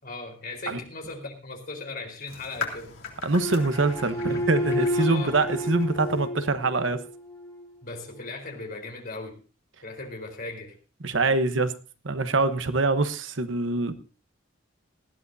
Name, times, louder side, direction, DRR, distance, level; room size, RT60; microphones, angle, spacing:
voice 1, 0.0-3.0 4.8-5.3 7.8-9.4 9.8-10.7, left 3 dB, 50° left, 3 dB, 4.2 m, -38 dB
sound 1, 2.3-6.3, left 5 dB, 85° left, 3.7 m, -40 dB
voice 2, 3.2-7.0 11.0-11.8 12.0-13.9, right 3 dB, 75° right, 10 dB, 1.1 m, -24 dB
sound 2, 3.3-7.6, left 1 dB, 15° left, 4.3 m, -31 dB
19.5 x 14.5 x 2.7 m, 0.34 s
head